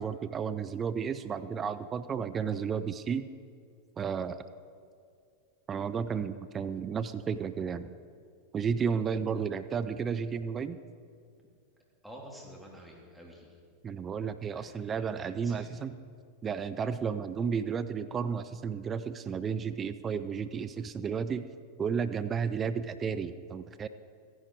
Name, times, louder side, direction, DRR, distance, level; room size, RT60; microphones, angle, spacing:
voice 1, 0.0-3.3 4.0-4.4 5.7-7.9 8.5-10.8 13.8-16.0 16.4-21.5 21.8-23.9, right 6 dB, 25° right, 12 dB, 0.5 m, -32 dB
voice 2, 12.0-13.6 14.5-15.0 15.4-15.7, equal, ahead, -3 dB, 3.0 m, -49 dB
15.5 x 11.0 x 4.7 m, 2.2 s
figure-of-eight pair, 90°, 0 cm